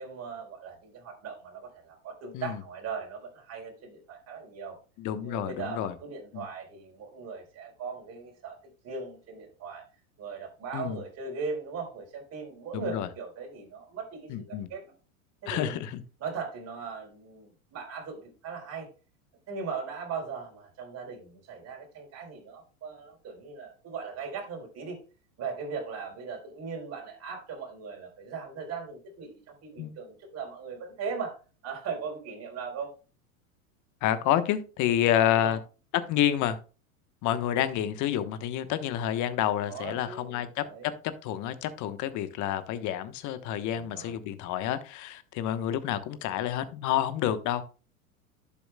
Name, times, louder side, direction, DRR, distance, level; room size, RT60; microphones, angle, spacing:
voice 1, 0.0-4.8 5.2-8.6 8.8-9.8 10.2-14.9 15.4-15.8 16.2-18.9 19.5-25.0 25.4-31.4 31.6-32.9 35.1-35.6 39.7-40.9 43.7-44.1, right 5 dB, 35° right, 1 dB, 4.1 m, -39 dB
voice 2, 5.0-5.9 6.3-6.4 10.7-11.0 12.7-13.1 14.3-14.7 15.5-16.0 29.8-29.9 34.0-35.6 36.1-36.6 37.2-40.9 41.2-47.6, left 11 dB, 45° left, 12 dB, 1.1 m, -29 dB
12.0 x 7.2 x 2.3 m, 0.35 s
hypercardioid pair, 95°, 43 cm